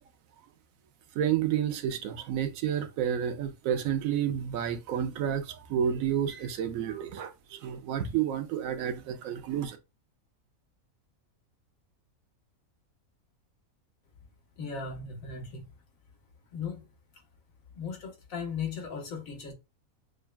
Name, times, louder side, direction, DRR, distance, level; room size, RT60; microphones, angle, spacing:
voice 1, 1.1-9.8, right 9 dB, 80° right, 1.0 m, -30 dB
voice 2, 14.6-15.7 16.5-16.9 17.7-19.5, left 5 dB, 75° left, 1.5 m, -37 dB
6.3 x 2.3 x 2.2 m
omnidirectional pair, 1.4 m